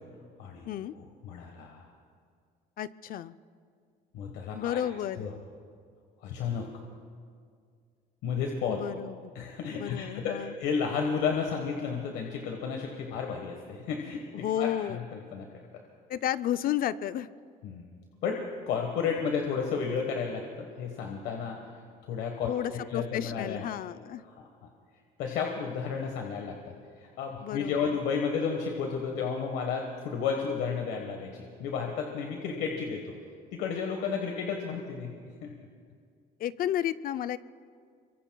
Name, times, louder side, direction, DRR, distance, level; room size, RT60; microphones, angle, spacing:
voice 1, 0.9-1.8 4.1-4.8 5.2-5.3 6.2-6.7 8.2-8.8 9.3-15.8 17.6-17.9 18.2-21.6 22.1-23.6 24.2-24.7 25.2-26.7 27.2-33.1 33.5-35.1 35.4-35.5, left 6 dB, 90° left, 2 dB, 1.4 m, -32 dB
voice 2, 2.8-3.3 4.5-5.3 8.7-9.3 9.7-10.6 14.3-15.1 16.1-17.3 22.4-24.2 27.4-27.9 36.4-37.4, left 11 dB, 60° left, 14 dB, 0.5 m, -32 dB
26.5 x 23.5 x 2.3 m, 2.2 s
cardioid pair, 110°, 17 cm